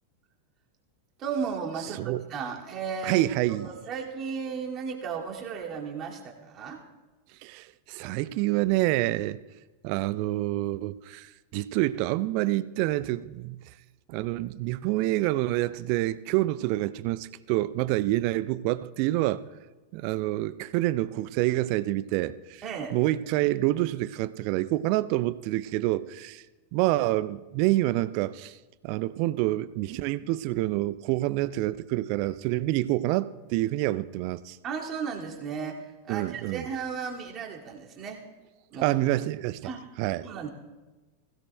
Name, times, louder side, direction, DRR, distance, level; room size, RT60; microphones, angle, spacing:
voice 1, 1.2-3.2 3.5-6.8 22.6-23.0 34.6-38.2 38.7-38.9 39.6-39.8 40.2-40.5, right 6 dB, 30° right, 2.2 m, -35 dB
voice 2, 3.0-3.7 7.4-9.4 9.8-13.7 14.1-19.4 19.9-22.6 22.9-26.4 26.7-28.6 28.8-34.6 36.1-36.7 38.8-39.7 40.0-40.3, right 17 dB, 45° right, 0.4 m, -27 dB
21.0 x 16.0 x 2.2 m
figure-of-eight pair, 90°, 0 cm